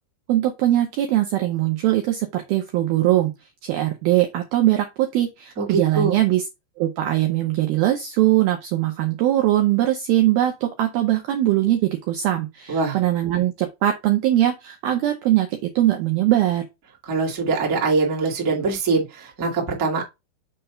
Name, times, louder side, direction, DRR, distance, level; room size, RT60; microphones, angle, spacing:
voice 1, 0.3-3.3 3.6-6.4 6.8-16.7, right 14 dB, 75° right, 2.2 m, -21 dB
voice 2, 5.6-6.2 12.7-13.0 17.0-20.0, right 4 dB, 35° right, 1.3 m, -23 dB
6.7 x 3.0 x 5.6 m
omnidirectional pair, 5.3 m